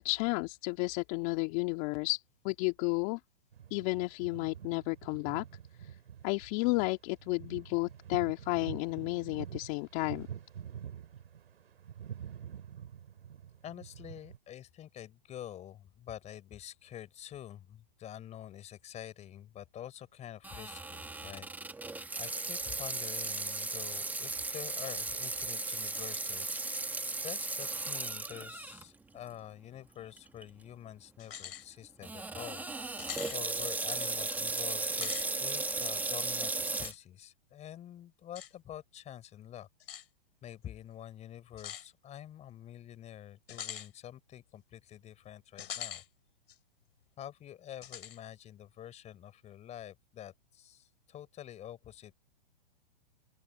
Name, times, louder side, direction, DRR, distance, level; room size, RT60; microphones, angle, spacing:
voice 1, 0.0-3.2 3.7-5.4 5.8-5.9 6.2-10.3, left 26 dB, 40° left, 2.3 m, -32 dB
sound 1, 3.5-14.4, right 9 dB, 80° right, 3.5 m, -47 dB
voice 2, 13.6-21.5 21.8-21.9 22.2-26.9 27.2-32.6 33.3-39.7 40.4-46.0 47.2-52.1, left 11 dB, 20° left, 4.4 m, -47 dB
Water tap faucet / Sink (filling or washing), 20.4-28.8 29.3-29.4 30.2-30.4 32.0-36.9, right 3 dB, 5° right, 1.5 m, -36 dB
sound 2, 31.2-31.7 32.1-32.2 33.0-33.4 34.8-35.3 36.8-37.0 38.4-38.5 39.8-40.1 41.6-41.9 43.5-43.9 45.6-46.1 46.5-46.6 47.8-48.2, left 10 dB, 75° left, 4.4 m, -42 dB
open air
hypercardioid pair, 135°, 30 cm